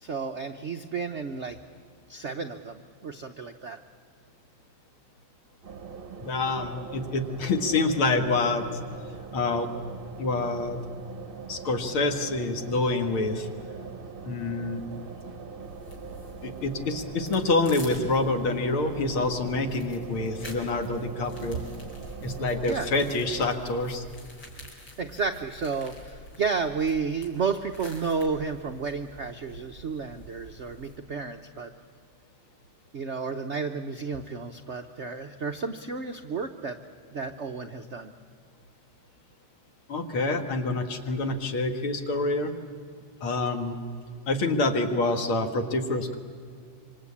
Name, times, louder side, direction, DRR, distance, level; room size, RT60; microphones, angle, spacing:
voice 1, 0.0-1.6 2.1-3.8 22.7-22.9 25.0-31.7 32.9-36.8 37.1-38.1, right 5 dB, 70° right, 6 dB, 0.6 m, -32 dB
sound 1, 5.6-23.5, right 5 dB, 40° right, 0.8 m, -42 dB
voice 2, 6.2-8.7 9.3-9.7 10.2-10.8 11.5-13.5 14.3-14.8 16.4-21.6 22.2-24.0 39.9-42.5 43.2-43.8 44.3-46.2, left 3 dB, 75° left, 6 dB, 2.6 m, -27 dB
sound 2, 15.6-31.0, equal, 60° left, 5.2 m, -47 dB
26.0 x 25.5 x 8.6 m, 2.3 s
omnidirectional pair, 2.4 m